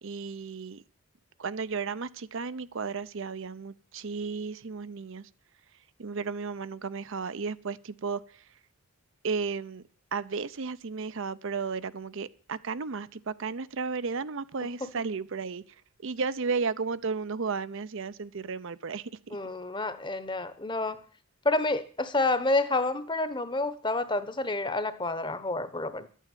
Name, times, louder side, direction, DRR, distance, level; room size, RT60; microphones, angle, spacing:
voice 1, 0.0-0.8 1.4-5.3 6.0-8.5 9.2-9.8 10.1-19.4, right 5 dB, 60° right, 15 dB, 0.6 m, -34 dB
voice 2, 19.3-21.0 21.4-26.1, left 2 dB, 20° left, 13 dB, 1.0 m, -29 dB
12.0 x 9.2 x 9.1 m, 0.43 s
head